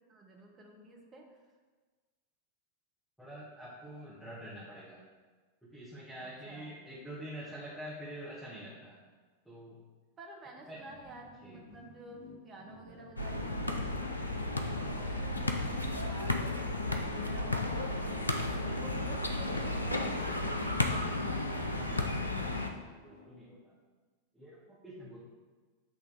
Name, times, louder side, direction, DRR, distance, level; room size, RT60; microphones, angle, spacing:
voice 1, 0.1-1.3 6.2-6.7 10.2-15.2 16.0-20.4 25.0-25.1, right 2 dB, 25° right, 0 dB, 0.9 m, -52 dB
voice 2, 3.2-5.0 5.6-9.0 9.4-9.8 10.7-10.8 11.4-11.6 21.5-23.8 24.3-25.2, equal, ahead, -9 dB, 1.5 m, -46 dB
sound 1, 10.7-23.3, left 1 dB, 60° left, 1.8 m, -51 dB
sound 2, 13.2-22.7, left 2 dB, 85° left, 0.5 m, -33 dB
8.1 x 3.4 x 4.8 m, 1.4 s
figure-of-eight pair, 90°, 0 cm